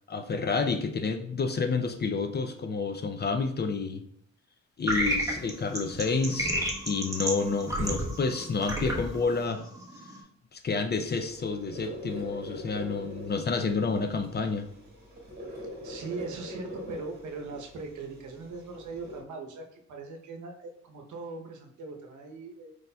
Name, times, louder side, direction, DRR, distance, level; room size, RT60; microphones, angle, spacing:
voice 1, 0.1-4.0 4.8-6.5 6.9-9.6 10.5-14.7, left 4 dB, 35° left, 7 dB, 0.4 m, -29 dB
sound 1, 4.9-10.2, right 1 dB, 10° right, 1.0 m, -32 dB
sound 2, 10.9-19.2, equal, 35° right, 1.6 m, -43 dB
voice 2, 15.8-22.8, right 3 dB, 75° right, 2 dB, 0.8 m, -40 dB
4.8 x 4.1 x 2.2 m, 0.70 s
cardioid pair, 110°, 30 cm